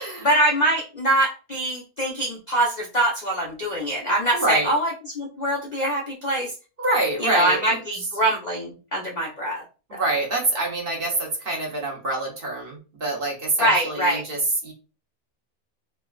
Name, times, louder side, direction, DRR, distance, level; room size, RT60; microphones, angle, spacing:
voice 1, 0.2-6.5 7.2-9.6 9.9-10.0 13.6-14.2, right 1 dB, 65° left, -1 dB, 0.4 m, -23 dB
voice 2, 4.3-4.7 6.8-8.0 9.9-14.7, right 2 dB, 45° right, -2 dB, 0.9 m, -26 dB
3.2 x 2.2 x 2.2 m, 0.34 s
omnidirectional pair, 1.5 m